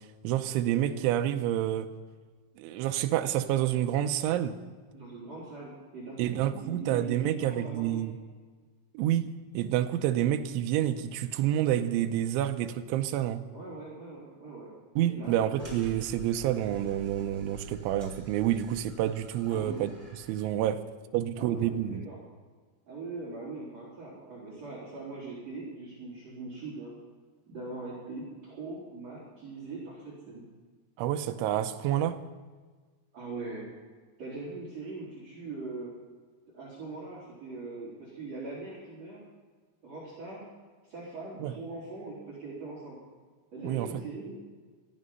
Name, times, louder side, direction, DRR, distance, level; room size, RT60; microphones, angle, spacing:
voice 1, 0.2-1.9 2.6-4.6 6.2-8.2 8.9-13.4 15.0-19.9 20.3-20.8 21.1-22.0 31.0-32.2 41.4-41.5 43.6-43.9, right 12 dB, 80° right, 8 dB, 3.0 m, -28 dB
voice 2, 4.9-8.0 13.5-14.7 15.0-15.4 19.5-19.8 21.4-22.2 22.9-26.9 27.5-30.5 33.1-33.6 34.2-35.9 36.5-39.2 39.8-40.4 40.9-43.0 43.5-44.3, right 3 dB, 35° right, -4 dB, 4.7 m, -41 dB
sound 1, 15.6-20.7, right 1 dB, 10° right, 3.7 m, -47 dB
17.5 x 14.5 x 5.5 m, 1.4 s
omnidirectional pair, 5.9 m